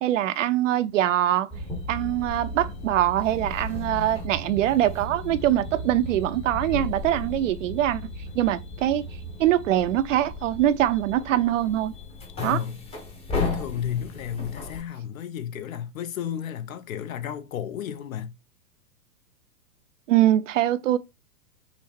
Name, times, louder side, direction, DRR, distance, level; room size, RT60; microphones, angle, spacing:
voice 1, 0.0-1.5 1.9-8.0 8.3-9.0 9.4-11.9 12.4-12.6 20.1-21.0, right 12 dB, 55° right, 0.5 m, -23 dB
sound 1, 1.5-14.8, left 2 dB, 15° left, 0.8 m, -35 dB
voice 2, 12.4-12.8 13.3-18.3, left 9 dB, 60° left, 0.8 m, -32 dB
5.8 x 2.1 x 4.3 m
hypercardioid pair, 130°, 47 cm